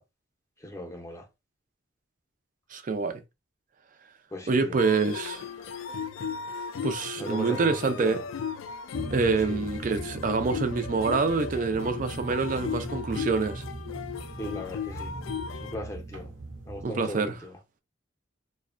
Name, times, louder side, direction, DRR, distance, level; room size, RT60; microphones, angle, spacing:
voice 1, 0.6-1.3 4.3-4.8 7.1-8.2 9.3-9.6 12.5-12.7 14.4-15.2 15.6-16.3 16.7-17.6, equal, 15° left, 0.6 m, -38 dB
voice 2, 2.7-3.2 4.5-5.4 6.8-8.2 9.1-13.6 16.8-17.3, right 4 dB, 40° right, 0.4 m, -26 dB
sound 1, 4.8-15.8, left 7 dB, 90° left, 0.3 m, -37 dB
sound 2, 8.9-16.8, right 2 dB, 70° right, 0.7 m, -39 dB
2.5 x 2.1 x 2.4 m
head